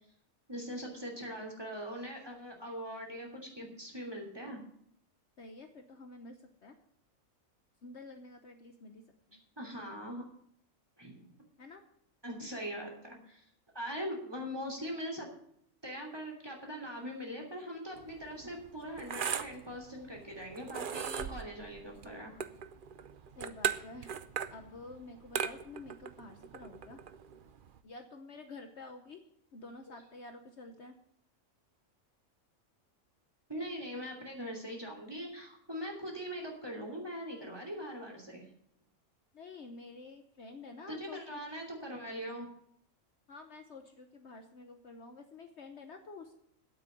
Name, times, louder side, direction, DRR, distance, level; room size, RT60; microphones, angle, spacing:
voice 1, 0.5-4.6 9.6-10.3 11.0-11.3 12.2-13.4 13.7-15.3 15.8-22.3 33.5-38.5 40.9-42.5, equal, 15° right, 1 dB, 3.0 m, -41 dB
voice 2, 5.4-6.8 7.8-9.0 9.3-9.4 11.6-11.8 23.4-24.1 24.5-27.0 27.8-30.9 39.3-41.4 43.3-46.4, left 3 dB, 55° left, 6 dB, 1.2 m, -49 dB
sound 1, 18.0-27.8, right 8 dB, 50° right, 0.7 m, -39 dB
9.1 x 8.2 x 9.1 m, 0.71 s
omnidirectional pair, 1.5 m